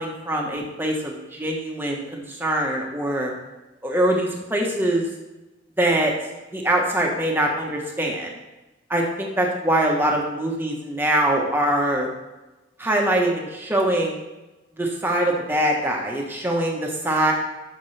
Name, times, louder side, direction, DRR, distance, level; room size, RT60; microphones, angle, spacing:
voice 1, 0.0-3.3 3.8-5.1 5.8-6.1 6.5-8.3 8.9-12.1 12.8-14.2 14.7-17.3, right 1 dB, 10° right, -1 dB, 1.2 m, -23 dB
10.0 x 6.0 x 3.3 m, 1.1 s
head